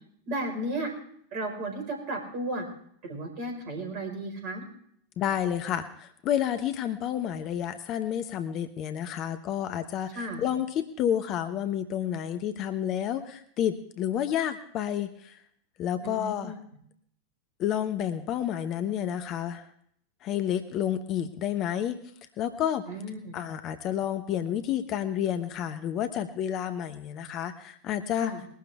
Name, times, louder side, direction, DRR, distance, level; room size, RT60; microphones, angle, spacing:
voice 1, 0.3-0.9 1.3-2.7 3.0-4.6 10.1-10.4 16.0-16.6 22.9-23.4 28.2-28.4, right 1 dB, 45° right, 3 dB, 5.1 m, -34 dB
voice 2, 5.2-15.4 15.8-16.5 17.6-19.7 20.2-22.0 22.4-22.8 23.3-28.3, left 10 dB, 35° left, 9 dB, 1.0 m, -30 dB
21.5 x 12.0 x 3.6 m, 0.66 s
figure-of-eight pair, 90°, 0 cm